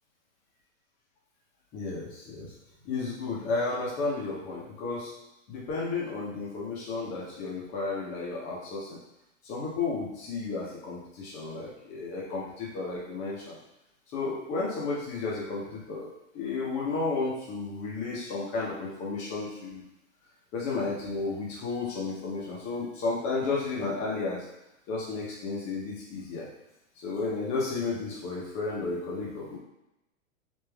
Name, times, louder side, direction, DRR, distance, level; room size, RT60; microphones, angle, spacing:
voice 1, 1.7-2.5 2.8-5.1 5.5-9.0 9.4-13.6 14.1-19.8 20.5-24.4 24.9-26.5 27.0-29.6, left 3 dB, 20° left, -5 dB, 0.6 m, -33 dB
3.5 x 2.5 x 3.3 m, 0.89 s
supercardioid pair, 160°, 39 cm